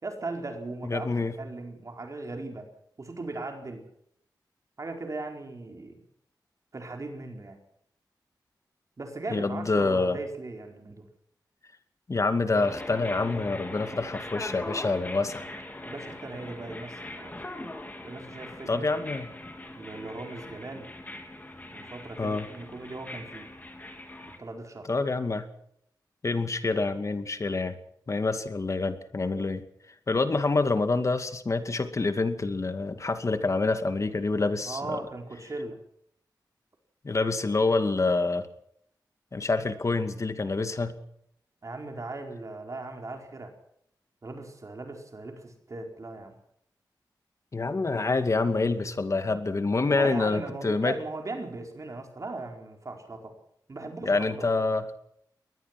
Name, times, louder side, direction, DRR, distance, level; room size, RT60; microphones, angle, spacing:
voice 1, 0.0-1.1 1.4-2.7 3.0-3.8 4.8-6.0 6.7-7.6 9.0-11.1 15.8-17.4 18.0-19.2 19.7-20.9 21.7-23.5 24.3-24.9 34.7-35.8 41.6-43.5 44.2-46.3 49.9-53.3 53.7-54.6, right 2 dB, 45° right, 4 dB, 4.6 m, -38 dB
voice 2, 0.8-1.4 9.3-10.2 12.1-15.5 18.7-19.4 22.2-22.5 24.9-25.5 26.2-27.7 28.1-29.6 30.1-35.0 37.0-38.5 39.3-41.0 47.5-50.9 54.0-54.9, left 3 dB, 40° left, 9 dB, 2.3 m, -27 dB
sound 1, 12.5-24.4, left 1 dB, 20° left, 3.8 m, -41 dB
23.0 x 20.0 x 6.1 m, 0.70 s
wide cardioid pair, 130°, 8 cm